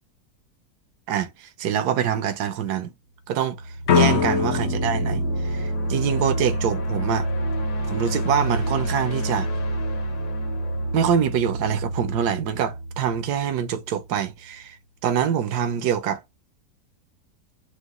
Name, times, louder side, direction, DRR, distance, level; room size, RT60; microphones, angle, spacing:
voice 1, 1.1-2.9 3.3-3.6 3.9-7.3 7.8-9.5 10.9-14.8 15.0-16.2, right 8 dB, 80° right, 1.2 m, -25 dB
sound 1, 3.4-14.2, right 1 dB, 75° left, 1.6 m, -28 dB
sound 2, 3.9-6.8, left 7 dB, 60° left, 0.8 m, -24 dB
5.0 x 2.1 x 3.6 m
omnidirectional pair, 1.7 m